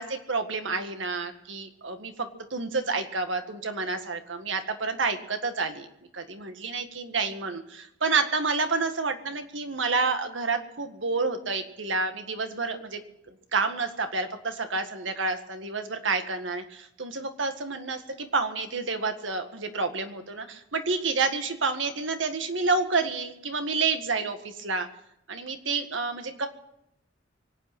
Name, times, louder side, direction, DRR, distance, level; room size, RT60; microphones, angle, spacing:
voice 1, 0.0-5.9 6.1-13.0 13.5-24.9 25.3-26.5, right 4 dB, 80° right, 7 dB, 1.8 m, -29 dB
24.0 x 8.8 x 6.0 m, 0.79 s
head